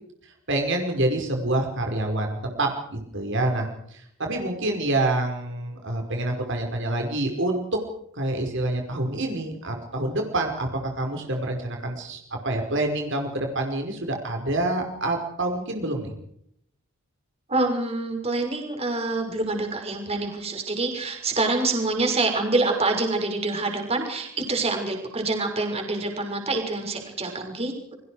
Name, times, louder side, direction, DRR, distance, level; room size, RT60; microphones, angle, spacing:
voice 1, 0.2-7.8 8.1-10.7 10.9-16.1, right 1 dB, 55° right, 2 dB, 5.1 m, -27 dB
voice 2, 17.5-27.9, right 3 dB, 30° right, 3 dB, 6.1 m, -26 dB
30.0 x 24.5 x 5.0 m, 0.72 s
head